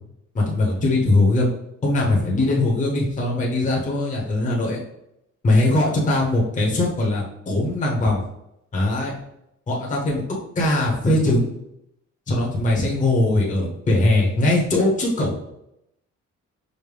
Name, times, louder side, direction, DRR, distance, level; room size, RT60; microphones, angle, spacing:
voice 1, 0.3-1.5 1.8-4.8 5.4-8.2 8.7-9.1 9.7-10.2 10.6-11.5 12.3-15.3, left 2 dB, 25° left, -3 dB, 0.8 m, -20 dB
5.1 x 2.1 x 3.3 m, 0.81 s
cardioid pair, 135°, 29 cm